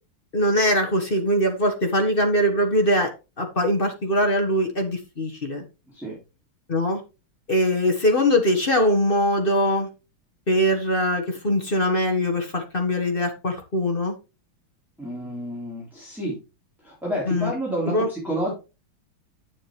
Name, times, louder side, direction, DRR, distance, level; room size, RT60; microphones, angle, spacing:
voice 1, 0.3-3.1 3.4-5.6 6.7-7.0 7.5-9.9 10.5-14.1 17.3-17.5 17.9-18.1, equal, 30° left, 4 dB, 1.3 m, -22 dB
voice 2, 5.9-6.2 15.0-16.4 16.8-18.5, equal, ahead, -6 dB, 3.7 m, -29 dB
9.5 x 7.2 x 3.2 m, 0.29 s
omnidirectional pair, 2.3 m